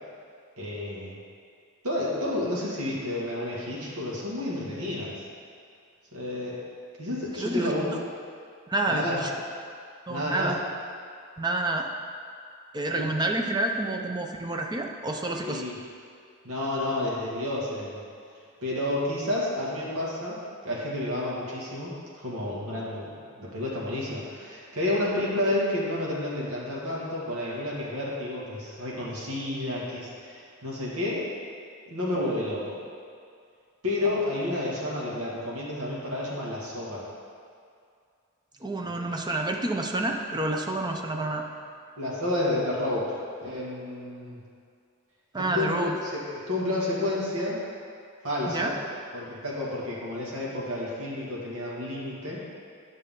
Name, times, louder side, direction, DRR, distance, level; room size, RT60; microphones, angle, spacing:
voice 1, 0.6-1.2 1.8-5.2 6.1-6.6 7.0-7.9 8.9-9.2 10.1-10.5 13.0-13.1 15.3-15.8 16.4-18.0 18.6-20.4 20.6-31.3 31.9-32.8 33.8-37.0 38.8-39.1 42.0-44.4 45.4-47.6 48.2-48.8 49.1-52.4, left 1 dB, 85° right, -6 dB, 2.1 m, -30 dB
voice 2, 7.4-8.0 8.7-9.3 10.1-10.6 11.4-11.9 12.7-15.6 38.6-41.5 45.3-45.9 48.5-48.7, right 2 dB, 20° right, 2 dB, 0.6 m, -29 dB
9.5 x 6.5 x 3.8 m, 2.3 s
head